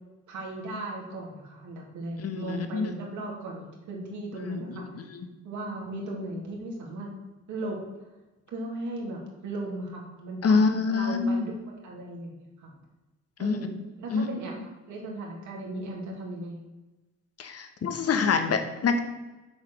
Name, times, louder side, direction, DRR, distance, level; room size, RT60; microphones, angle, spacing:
voice 1, 0.3-4.9 5.4-7.1 7.5-8.1 8.5-10.6 10.9-12.7 13.4-16.6, right 1 dB, 75° right, -1 dB, 2.8 m, -37 dB
voice 2, 2.2-2.9 4.5-4.8 10.4-11.4 13.4-13.6 14.1-14.2 17.4-19.0, left 5 dB, 55° left, 7 dB, 1.3 m, -25 dB
7.9 x 5.0 x 6.3 m, 1.1 s
cardioid pair, 90°, 30 cm